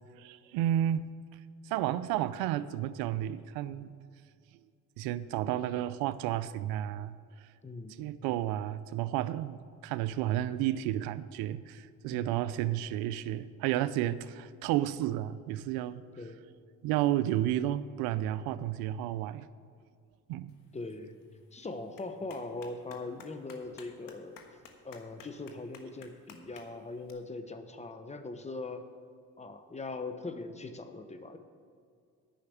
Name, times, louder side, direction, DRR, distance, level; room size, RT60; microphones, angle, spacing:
voice 1, 0.2-1.1 1.6-3.9 5.0-7.1 8.0-16.0 16.8-19.5 20.3-20.5, right 12 dB, 85° right, 15 dB, 0.6 m, -32 dB
voice 2, 7.6-8.0 12.1-12.4 16.2-16.4 20.7-21.2 21.5-24.4 24.8-28.9 29.4-31.4, left 3 dB, 20° left, 8 dB, 0.9 m, -41 dB
Clapping, 20.5-27.1, left 6 dB, 65° left, 1.4 m, -56 dB
10.0 x 5.7 x 8.5 m, 2.3 s
supercardioid pair, 85°, 36 cm